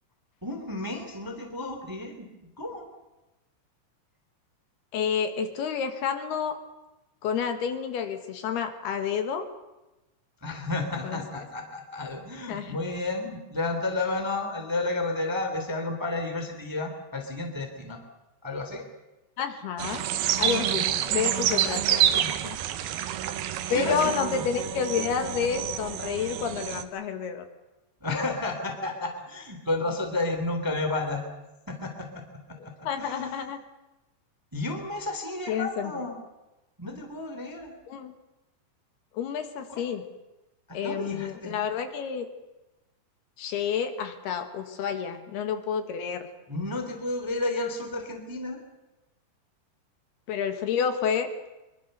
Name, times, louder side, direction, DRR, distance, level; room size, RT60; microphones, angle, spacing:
voice 1, 0.4-2.9 10.4-18.0 18.4-18.9 20.7-21.1 21.6-22.3 23.7-24.5 28.0-31.2 31.7-33.5 34.5-36.2 36.8-37.7 39.7-39.8 40.7-41.5 46.5-48.6, left 2 dB, 5° right, 4 dB, 1.9 m, -32 dB
voice 2, 4.9-6.6 7.2-9.5 11.0-11.2 12.5-12.8 19.4-20.1 20.4-22.0 22.4-22.6 23.7-27.4 32.8-33.6 35.5-36.0 37.9-38.1 39.1-40.0 40.7-42.3 43.4-46.3 50.3-51.5, left 7 dB, 70° left, 7 dB, 3.3 m, -29 dB
sound 1, 19.8-26.8, right 11 dB, 70° right, 2.7 m, -28 dB
24.0 x 23.0 x 6.7 m, 1.0 s
omnidirectional pair, 5.1 m